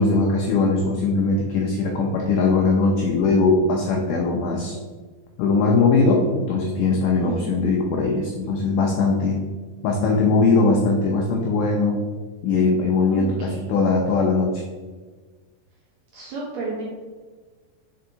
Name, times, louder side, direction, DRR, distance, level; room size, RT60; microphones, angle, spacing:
voice 1, 0.0-4.8 5.4-9.4 9.8-12.0 12.4-14.6, left 3 dB, 85° left, 0 dB, 1.8 m, -20 dB
voice 2, 7.2-7.6 13.1-13.7 16.1-16.8, right 4 dB, 80° right, -4 dB, 1.6 m, -32 dB
5.4 x 4.6 x 3.8 m, 1.4 s
omnidirectional pair, 4.5 m